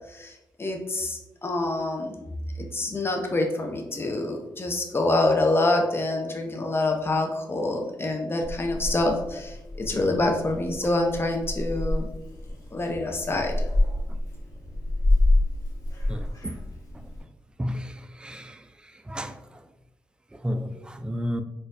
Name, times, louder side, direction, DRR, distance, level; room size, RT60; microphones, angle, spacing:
voice 1, 0.1-2.2 2.6-12.1 12.7-13.6, left 2 dB, 30° left, 3 dB, 0.7 m, -26 dB
Purr / Meow, 8.4-17.2, left 1 dB, 45° left, 1.3 m, -28 dB
voice 2, 16.1-16.5 17.6-17.8 18.2-18.5 19.1-19.3 20.4-21.4, equal, 10° right, 8 dB, 0.3 m, -31 dB
4.2 x 2.6 x 2.5 m, 0.98 s
cardioid pair, 75°, 8 cm